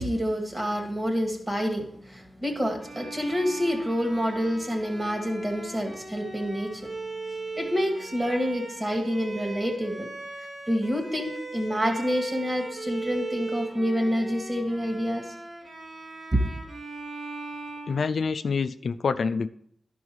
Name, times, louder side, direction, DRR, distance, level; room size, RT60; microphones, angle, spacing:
voice 1, 0.0-6.9 7.6-10.1 10.7-15.3 16.3-16.5, equal, 25° right, 4 dB, 2.1 m, -27 dB
Bowed string instrument, 2.8-18.7, right 3 dB, 60° right, 2.9 m, -39 dB
voice 2, 17.9-19.5, left 5 dB, 75° left, 11 dB, 0.3 m, -26 dB
11.5 x 5.4 x 4.7 m, 0.68 s
cardioid pair, 45°, 0 cm